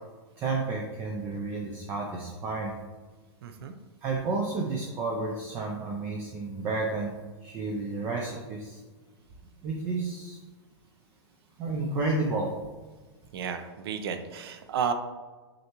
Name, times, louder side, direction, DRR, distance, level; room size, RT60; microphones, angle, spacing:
voice 1, 0.4-2.7 4.0-8.8 9.6-10.4 11.6-12.5, right 3 dB, 15° right, 0 dB, 0.3 m, -31 dB
voice 2, 3.4-3.7 13.3-14.9, right 7 dB, 60° right, 8 dB, 0.7 m, -32 dB
6.3 x 5.5 x 3.0 m, 1.3 s
supercardioid pair, 175°, 14 cm